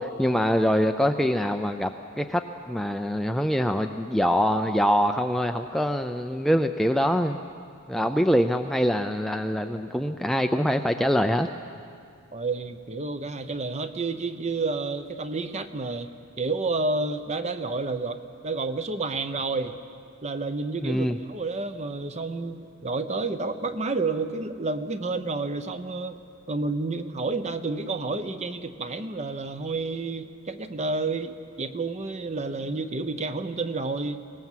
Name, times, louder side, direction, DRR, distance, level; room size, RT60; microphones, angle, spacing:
voice 1, 0.0-1.9 2.2-2.4 2.7-7.4 7.9-11.5 20.8-21.2, equal, ahead, 5 dB, 0.5 m, -24 dB
voice 2, 12.3-16.1 16.4-18.2 18.4-19.8 20.2-26.2 26.5-34.2, right 3 dB, 30° right, 9 dB, 0.9 m, -30 dB
24.0 x 18.5 x 7.5 m, 2.3 s
head